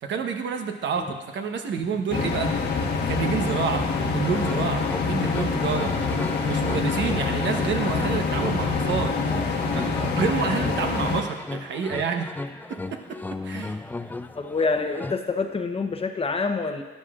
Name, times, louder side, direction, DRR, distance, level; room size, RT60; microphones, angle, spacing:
voice 1, 0.0-2.5 3.0-5.9 6.4-9.1 9.6-12.3 12.7-13.2 13.4-13.8, right 6 dB, 65° right, 5 dB, 1.0 m, -28 dB
sound 1, 2.1-11.2, left 4 dB, 60° left, 1.2 m, -26 dB
sound 2, 4.2-15.1, left 2 dB, 10° left, 0.4 m, -36 dB
voice 2, 14.3-16.8, left 4 dB, 30° left, 6 dB, 0.8 m, -26 dB
13.5 x 9.7 x 2.4 m, 1.2 s
cardioid pair, 90°, 20 cm